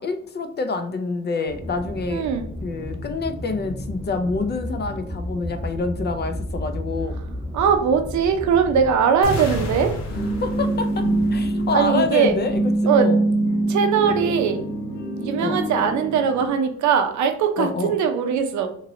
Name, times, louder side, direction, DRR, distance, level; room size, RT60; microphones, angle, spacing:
voice 1, 0.0-2.3 2.6-7.1 10.4-12.7 13.0-13.2 15.4-15.6 17.6-18.0, left 3 dB, 35° left, 7 dB, 0.5 m, -27 dB
Aircraft, 1.5-10.9, equal, 5° right, 0.8 m, -33 dB
voice 2, 2.1-2.5 7.5-10.0 11.7-12.3 12.9-13.1 13.7-14.6 15.2-18.7, right 7 dB, 70° right, 7 dB, 0.6 m, -20 dB
sound 1, 9.2-13.2, left 1 dB, 65° left, 0.8 m, -32 dB
sound 2, 10.1-16.5, right 2 dB, 85° left, 1.1 m, -24 dB
3.0 x 2.8 x 2.6 m, 0.65 s
cardioid pair, 90°, 30 cm